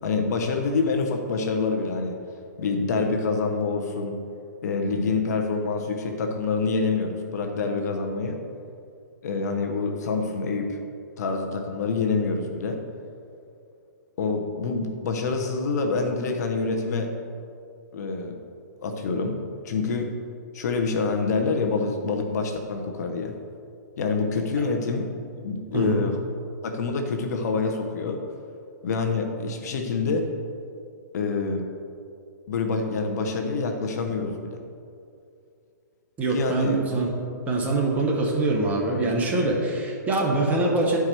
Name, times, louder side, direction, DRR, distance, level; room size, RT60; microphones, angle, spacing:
voice 1, 0.0-2.1 2.6-4.2 4.6-8.4 9.2-10.8 11.2-12.8 14.2-17.1 17.9-18.3 18.8-19.4 19.6-20.1 20.5-23.3 24.0-25.1 25.4-26.2 26.6-28.2 28.8-30.2 31.1-31.7 32.5-34.6 36.3-36.8, left 4 dB, 60° left, 4 dB, 1.0 m, -26 dB
voice 2, 25.7-26.0 36.2-37.1 37.5-41.0, right 2 dB, 15° right, -2 dB, 1.3 m, -24 dB
11.0 x 4.8 x 4.5 m, 2.5 s
hypercardioid pair, 140°, 10 cm